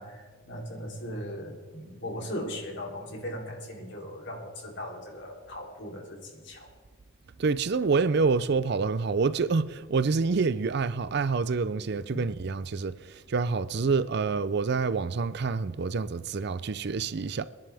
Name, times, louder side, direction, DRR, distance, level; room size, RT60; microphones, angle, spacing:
voice 1, 0.0-6.7, equal, 60° left, 3.4 m, -38 dB
voice 2, 7.4-17.4, right 4 dB, 55° right, 0.5 m, -27 dB
28.5 x 11.0 x 3.5 m
head